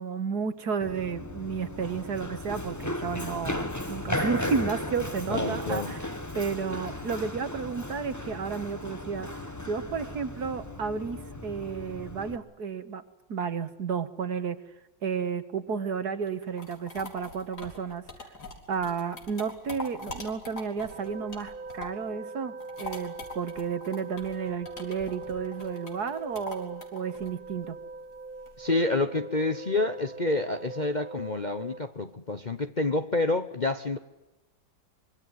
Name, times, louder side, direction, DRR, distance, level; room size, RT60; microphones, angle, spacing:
voice 1, 0.0-6.1 6.4-9.3 9.7-13.0 13.3-14.6 15.0-18.0 18.7-27.8, right 6 dB, 60° right, 2.0 m, -32 dB
Run, 0.8-12.4, left 1 dB, 10° left, 1.5 m, -36 dB
voice 2, 5.3-5.9 28.6-34.0, left 2 dB, 30° left, 0.9 m, -28 dB
sound 1, 16.3-22.1 22.4-28.7, left 2 dB, 60° left, 4.7 m, -43 dB
sound 2, 20.9-31.8, right 3 dB, 85° right, 3.1 m, -42 dB
25.0 x 23.5 x 9.6 m
omnidirectional pair, 2.0 m